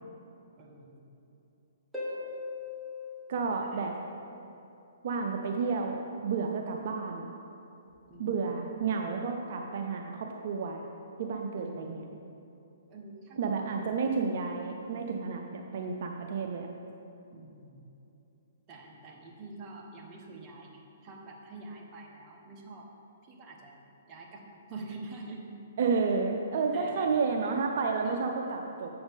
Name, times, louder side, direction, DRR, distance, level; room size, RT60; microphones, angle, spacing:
voice 1, 0.6-1.2 3.3-3.9 8.1-8.7 11.6-12.1 12.9-14.0 17.3-17.9 18.7-22.9 23.2-23.8 24.1-25.4 26.7-27.7 28.0-28.2, right 2 dB, 25° right, -1 dB, 1.1 m, -47 dB
Harp, 1.9-4.4 7.9-8.0, left 3 dB, ahead, 1.3 m, -40 dB
voice 2, 3.3-3.9 5.0-7.3 8.2-10.9 11.2-12.0 13.4-16.7 25.8-28.9, right 5 dB, 60° right, 3 dB, 0.5 m, -31 dB
7.8 x 7.3 x 3.6 m, 2.8 s
hypercardioid pair, 145°, 0 cm